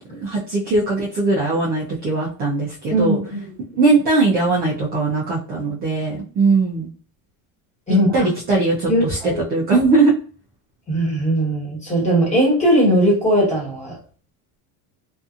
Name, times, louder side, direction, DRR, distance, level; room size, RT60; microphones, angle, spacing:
voice 1, 0.2-3.2 3.8-6.9 8.1-10.1, right 3 dB, 25° right, -3 dB, 0.4 m, -19 dB
voice 2, 2.9-3.4 7.9-8.3 8.9-9.4 10.9-13.9, equal, 15° left, -5 dB, 1.3 m, -19 dB
2.6 x 2.4 x 2.4 m, 0.40 s
cardioid pair, 165°, 42 cm